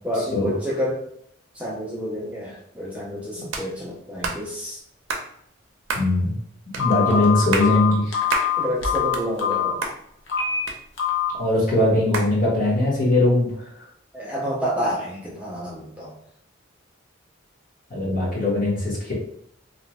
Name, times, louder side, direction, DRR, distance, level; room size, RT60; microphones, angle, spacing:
voice 1, 0.0-1.0 1.6-4.8 7.0-7.2 8.6-9.8 14.1-16.1, equal, 5° right, -5 dB, 0.3 m, -29 dB
sound 1, 3.5-3.7 4.2-4.4 5.1-5.3 5.9-6.1 6.7-6.9 7.4-7.7 8.3-8.5 8.9-9.6 9.8-10.0 10.7-11.2 12.1-12.3, right 3 dB, 80° right, 0.5 m, -28 dB
voice 2, 5.9-6.4 6.8-8.1 11.4-13.5 17.9-19.1, left 1 dB, 45° left, -6 dB, 1.1 m, -20 dB
Telephone, 6.8-9.7 10.3-10.6 11.0-11.3, left 8 dB, 70° left, 0.6 m, -23 dB
2.7 x 2.1 x 2.8 m, 0.70 s
head